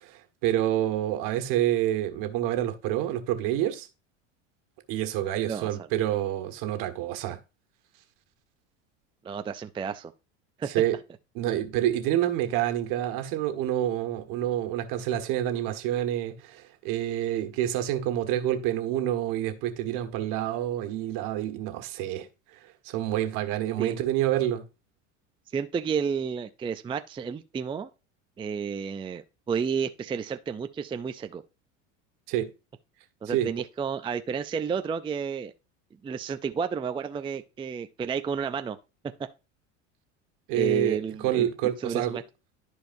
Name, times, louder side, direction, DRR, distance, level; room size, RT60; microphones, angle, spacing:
voice 1, 0.0-3.9 4.9-7.4 10.7-10.9 11.3-22.3 22.8-24.6 32.3-32.5 33.2-33.5 40.5-41.0 41.2-42.2, right 12 dB, 60° right, 1.6 m, -28 dB
voice 2, 9.2-10.1 10.6-10.7 23.8-24.0 25.5-27.9 28.4-31.4 33.2-35.5 36.0-38.8 40.5-41.5 41.8-42.2, right 6 dB, 15° right, 0.4 m, -31 dB
13.5 x 4.7 x 2.6 m
hypercardioid pair, 95°, 37 cm